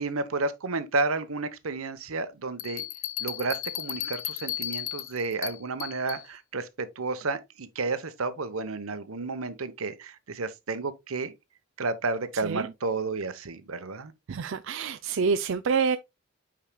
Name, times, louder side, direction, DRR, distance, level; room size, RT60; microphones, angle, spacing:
voice 1, 0.0-2.9 3.2-11.3 11.8-14.1, right 3 dB, 80° right, 0.9 m, -31 dB
Bell, 2.6-6.3, left 12 dB, 70° left, 0.6 m, -35 dB
voice 2, 14.3-16.0, right 5 dB, 65° right, 0.4 m, -27 dB
8.9 x 4.8 x 2.2 m
head